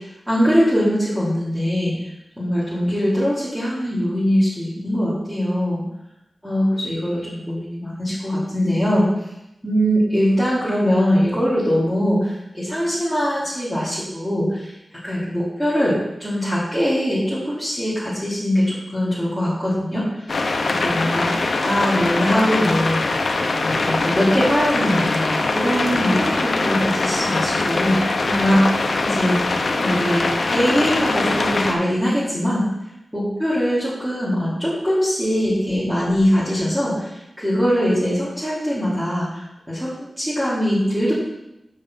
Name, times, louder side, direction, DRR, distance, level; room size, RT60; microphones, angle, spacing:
voice 1, 0.3-1.9 2.4-5.9 6.4-9.1 9.6-14.7 15.0-20.4 20.8-23.0 23.6-28.0 28.3-29.4 29.8-32.7 33.1-41.1, equal, 5° right, -10 dB, 3.0 m, -21 dB
sound 1, 20.3-31.7, left 3 dB, 65° left, 0.8 m, -22 dB
6.8 x 5.3 x 5.8 m, 0.86 s
cardioid pair, 55°, 0 cm